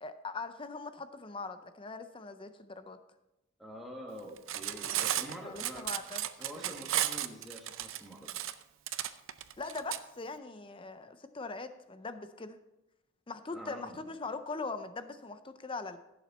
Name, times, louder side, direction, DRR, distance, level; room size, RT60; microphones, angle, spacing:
voice 1, 0.0-3.0 5.4-6.2 9.6-12.6 13.3-16.0, left 3 dB, 25° left, 10 dB, 0.5 m, -41 dB
voice 2, 3.6-5.9 6.4-8.3 13.5-14.1, equal, ahead, -1 dB, 1.6 m, -46 dB
Cutlery silverware, 4.4-10.0, right 12 dB, 60° right, 0.5 m, -34 dB
15.5 x 7.2 x 4.2 m, 0.95 s
head